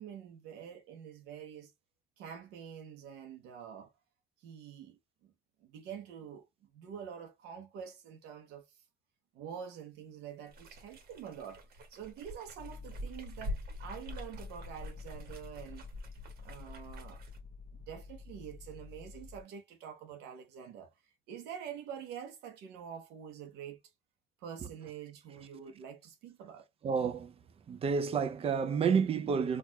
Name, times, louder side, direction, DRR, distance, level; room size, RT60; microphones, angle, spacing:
voice 1, 0.0-1.7 2.2-3.9 4.4-5.3 5.6-6.5 6.7-8.7 9.3-15.9 16.4-17.2 17.7-20.9 21.3-23.8 24.4-26.7, right 8 dB, 90° right, 0.8 m, -46 dB
sound 1, 10.5-17.4, left 1 dB, 65° right, 1.2 m, -46 dB
sound 2, 12.6-19.4, left 5 dB, 40° left, 0.7 m, -49 dB
voice 2, 26.8-27.3 27.7-29.6, right 6 dB, 35° right, 0.5 m, -30 dB
4.3 x 2.4 x 2.2 m
cardioid pair, 110°, 17 cm